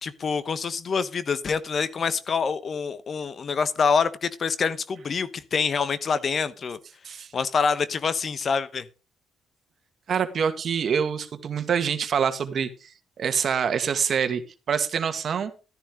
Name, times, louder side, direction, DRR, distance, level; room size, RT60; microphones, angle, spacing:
voice 1, 0.0-6.8 7.3-8.9, left 5 dB, 45° left, 1.1 m, -26 dB
voice 2, 10.1-12.7 13.2-14.4 14.7-15.5, right 7 dB, 55° right, 2.0 m, -25 dB
13.5 x 10.5 x 3.8 m
cardioid pair, 90°, 0 cm